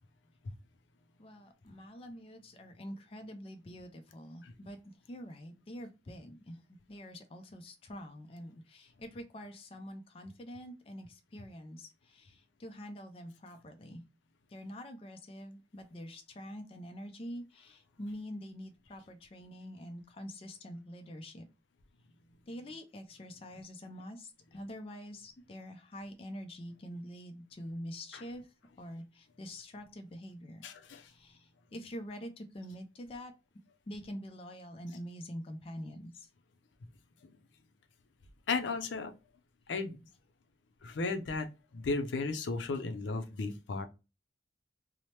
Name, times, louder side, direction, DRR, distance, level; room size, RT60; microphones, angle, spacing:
voice 1, 1.2-4.8 5.1-14.0 14.5-21.4 22.5-30.6 31.0-33.3 33.9-36.3, equal, 30° left, 6 dB, 0.4 m, -46 dB
voice 2, 30.6-31.1 37.2-37.3 38.5-39.1 39.7-40.0 40.8-41.5 41.7-43.9, left 3 dB, 85° left, 7 dB, 0.5 m, -35 dB
2.8 x 2.0 x 3.1 m, 0.29 s
head